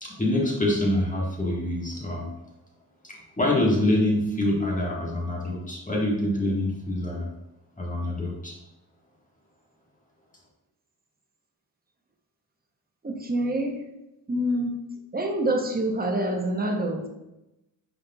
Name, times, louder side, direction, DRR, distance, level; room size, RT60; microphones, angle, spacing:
voice 1, 0.0-2.3 3.0-7.3 7.8-8.6, left 1 dB, 20° left, -3 dB, 1.5 m, -26 dB
voice 2, 13.0-13.8 14.3-14.7 15.1-17.1, right 1 dB, 25° right, 3 dB, 0.8 m, -26 dB
5.2 x 4.0 x 2.3 m, 0.93 s
cardioid pair, 50°, 37 cm